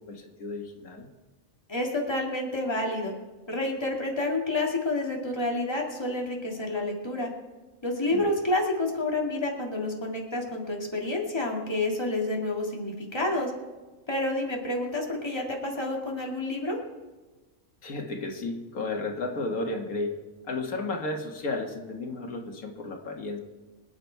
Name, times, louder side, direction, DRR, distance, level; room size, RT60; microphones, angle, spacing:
voice 1, 0.1-1.1 8.1-8.3 17.8-20.2 20.5-23.4, left 2 dB, 85° left, 2 dB, 2.1 m, -33 dB
voice 2, 1.7-3.1 3.5-7.3 7.8-13.5 14.1-16.8, left 2 dB, 20° left, -1 dB, 2.2 m, -29 dB
25.0 x 8.9 x 4.6 m, 1.2 s
omnidirectional pair, 1.5 m